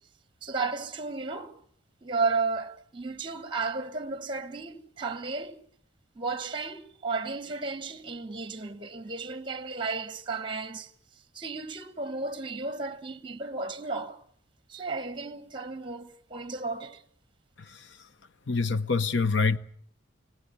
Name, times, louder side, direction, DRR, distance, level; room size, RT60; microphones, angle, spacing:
voice 1, 0.4-1.6 2.0-5.6 6.1-10.9 11.3-14.2 14.7-17.0, right 4 dB, 25° right, 1.2 m, -33 dB
voice 2, 18.5-19.6, left 4 dB, 65° left, 1.0 m, -25 dB
30.0 x 17.0 x 8.4 m
head